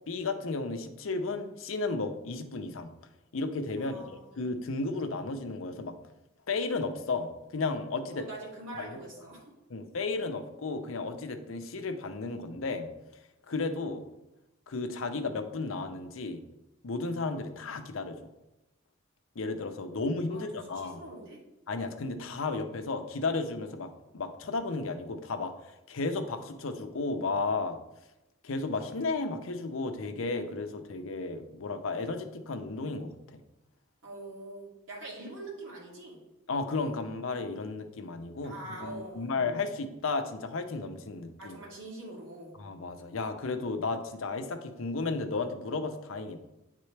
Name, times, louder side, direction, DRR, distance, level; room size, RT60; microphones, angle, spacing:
voice 1, 0.1-2.9 3.3-6.0 6.5-8.3 8.7-9.3 9.7-12.9 13.5-14.1 14.7-16.4 16.8-18.3 19.4-21.0 21.7-25.5 25.9-27.8 28.4-33.1 36.5-40.2 40.5-41.6 42.6-46.4, left 3 dB, 80° left, 7 dB, 0.6 m, -33 dB
voice 2, 3.8-4.3 8.1-9.5 20.3-20.5 20.7-21.4 34.0-36.2 38.4-39.4 41.4-42.5, right 2 dB, 70° right, -4 dB, 2.3 m, -44 dB
9.3 x 3.7 x 3.2 m, 0.96 s
head